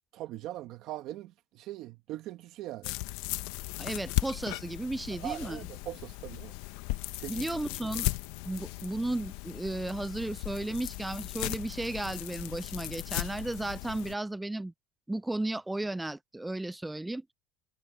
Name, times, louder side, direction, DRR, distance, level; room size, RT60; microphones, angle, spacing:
voice 1, 0.1-2.9 5.1-6.6 7.2-7.6, right 14 dB, 55° right, 1.3 m, -41 dB
sound 1, 2.8-14.1, left 20 dB, 75° left, 0.9 m, -37 dB
voice 2, 3.8-5.6 7.3-8.1 8.5-14.7 15.1-17.3, right 2 dB, 5° right, 0.3 m, -34 dB
cardioid pair, 140°, 0 cm